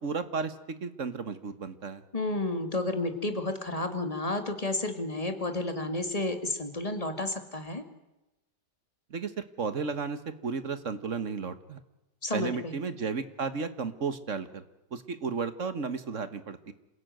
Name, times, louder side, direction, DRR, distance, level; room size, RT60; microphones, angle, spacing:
voice 1, 0.0-2.0 9.1-11.8 12.3-14.6 14.9-16.7, right 5 dB, 50° right, 12 dB, 1.6 m, -33 dB
voice 2, 2.1-7.8 12.2-12.7, left 2 dB, 20° left, 7 dB, 2.4 m, -31 dB
27.5 x 16.5 x 9.2 m, 1.0 s
omnidirectional pair, 1.8 m